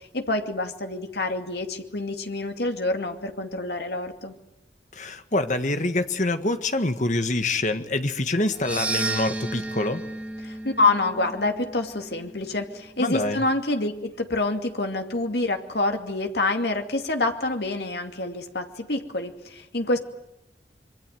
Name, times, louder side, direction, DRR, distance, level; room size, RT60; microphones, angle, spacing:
voice 1, 0.1-4.3 10.4-20.0, left 2 dB, 70° left, 5 dB, 2.5 m, -27 dB
voice 2, 4.9-10.0 13.0-13.4, left 2 dB, 45° left, 8 dB, 1.6 m, -25 dB
sound 1, 8.5-12.9, right 3 dB, 5° right, 2.0 m, -33 dB
26.0 x 23.5 x 9.4 m, 0.86 s
head